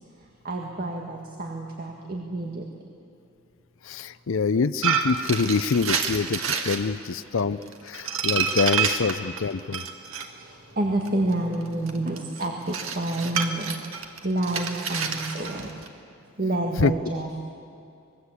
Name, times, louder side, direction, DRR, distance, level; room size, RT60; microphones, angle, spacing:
voice 1, 0.4-2.6 10.4-15.8 16.4-17.4, right 1 dB, 45° right, 1 dB, 1.9 m, -29 dB
voice 2, 3.8-7.6 7.8-9.8 16.8-16.9, left 5 dB, 65° left, 13 dB, 0.5 m, -25 dB
sound 1, 4.8-6.8 7.4-10.3 11.0-15.9, right 6 dB, 65° right, 1.9 m, -28 dB
25.5 x 21.0 x 8.4 m, 2.6 s
head